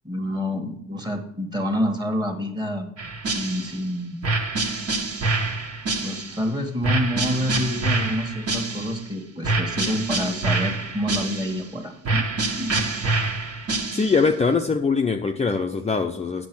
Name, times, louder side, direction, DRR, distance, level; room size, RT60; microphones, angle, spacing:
voice 1, 0.0-2.9 3.3-4.2 6.0-12.3 12.6-12.8, equal, 15° right, 5 dB, 1.7 m, -28 dB
sound 1, 3.0-3.8 4.2-6.4 6.8-9.1 9.4-11.7 12.0-14.3, right 3 dB, 55° right, 1.8 m, -26 dB
voice 2, 13.9-16.5, left 4 dB, 20° left, 3 dB, 0.6 m, -22 dB
8.5 x 6.2 x 6.1 m, 0.74 s
cardioid pair, 90°, 30 cm